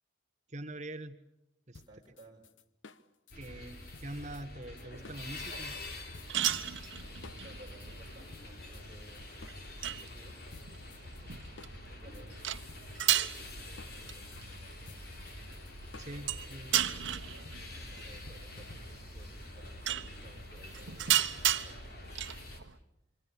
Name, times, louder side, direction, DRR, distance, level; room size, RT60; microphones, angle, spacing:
voice 1, 0.5-1.2 1.7-1.8 3.3-5.7 16.0-16.8, right 1 dB, 35° right, 8 dB, 1.3 m, -44 dB
sound 1, 1.7-5.7 6.1-6.9 7.2-10.1 10.5-19.2, left 3 dB, 85° left, 1.0 m, -55 dB
voice 2, 1.9-2.5 7.2-12.4 13.1-15.3 16.1-16.8 17.8-22.7, right 1 dB, 20° right, -1 dB, 4.8 m, -59 dB
sound 2, 3.3-22.6, left 1 dB, 55° left, 3.6 m, -46 dB
sound 3, 5.0-22.8, right 12 dB, 85° right, 1.0 m, -36 dB
26.5 x 24.0 x 6.9 m, 0.88 s
head